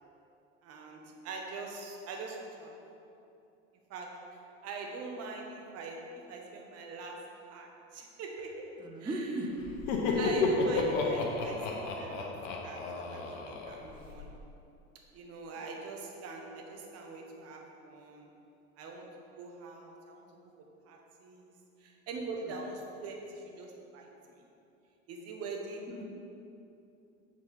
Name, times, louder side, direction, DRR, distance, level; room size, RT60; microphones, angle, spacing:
voice 1, 0.6-2.8 3.9-6.0 6.3-7.2 7.5-8.7 9.0-9.4 10.1-12.3 12.6-13.2 13.5-14.3 15.1-18.3 18.8-19.1 19.3-20.3 20.9-24.4 25.1-25.9, right 3 dB, 40° right, 1.1 m, -43 dB
voice 2, 8.8-10.3 13.8-14.1 26.0-26.1, right 1 dB, 10° right, 0.7 m, -38 dB
Laughter, 9.6-14.3, left 3 dB, 50° left, 0.9 m, -32 dB
7.1 x 4.1 x 5.2 m
figure-of-eight pair, 70°, 39 cm